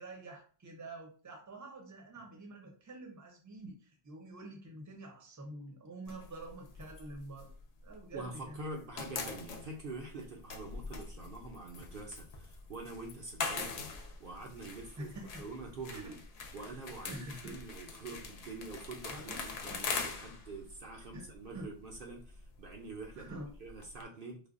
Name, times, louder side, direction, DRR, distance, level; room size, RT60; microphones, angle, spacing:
voice 1, 0.0-7.5 7.8-9.0 15.0-15.4 15.9-16.2 17.1-17.5 19.1-19.4 19.7-19.8 21.1-21.3 21.5-21.7 23.1-23.5, right 2 dB, 20° right, 2 dB, 0.6 m, -47 dB
sound 1, 6.1-8.3 8.6-24.0, left 4 dB, 55° left, 0.4 m, -43 dB
voice 2, 8.1-15.1 15.4-16.1 16.5-23.3 23.6-24.4, right 3 dB, 60° right, 1 dB, 0.7 m, -46 dB
4.8 x 2.1 x 2.4 m, 0.40 s
omnidirectional pair, 1.1 m